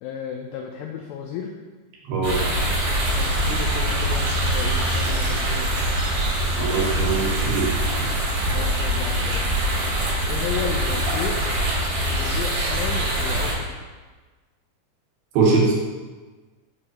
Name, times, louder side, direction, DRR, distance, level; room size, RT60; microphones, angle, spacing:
voice 1, 0.0-1.5 3.1-5.7 8.5-9.6 10.2-11.3 12.1-13.8, left 7 dB, 80° left, 1 dB, 2.3 m, -33 dB
voice 2, 2.1-2.4 6.6-7.7 8.0-8.1 15.3-15.7, right 4 dB, 85° right, -4 dB, 3.2 m, -21 dB
sound 1, 2.2-13.5, right 1 dB, 60° right, 3.4 m, -23 dB
8.2 x 4.8 x 2.8 m, 1.3 s
omnidirectional pair, 4.4 m